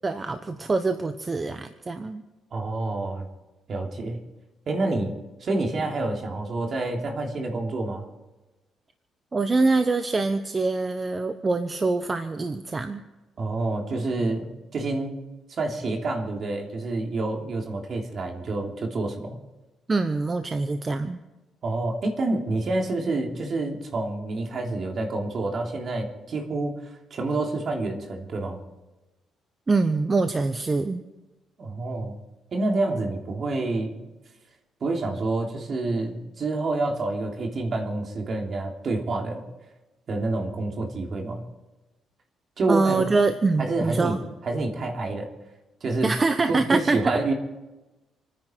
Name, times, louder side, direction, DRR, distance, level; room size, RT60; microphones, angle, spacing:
voice 1, 0.0-2.2 9.3-13.0 19.9-21.2 29.7-31.0 42.7-44.2 46.0-47.0, right 3 dB, 30° right, 9 dB, 0.9 m, -24 dB
voice 2, 2.5-3.3 3.7-4.2 4.7-5.1 5.4-8.1 13.4-14.5 14.7-15.2 15.6-19.3 21.6-26.8 27.1-28.6 31.6-32.2 32.5-34.0 34.8-39.4 40.1-41.4 42.6-43.0 43.6-44.2 44.4-45.3 45.8-46.1 46.5-47.3, right 2 dB, 50° right, 1 dB, 3.2 m, -28 dB
28.0 x 10.0 x 4.6 m, 1.1 s
cardioid pair, 90°, 0 cm